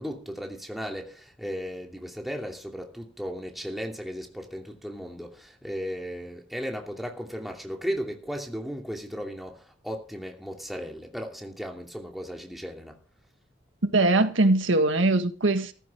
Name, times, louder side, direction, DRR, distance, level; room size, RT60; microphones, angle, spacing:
voice 1, 0.0-13.0, equal, ahead, 2.6 m, -36 dB
voice 2, 13.8-15.7, right 2 dB, 90° right, 1.7 m, -21 dB
14.5 x 14.5 x 3.6 m
head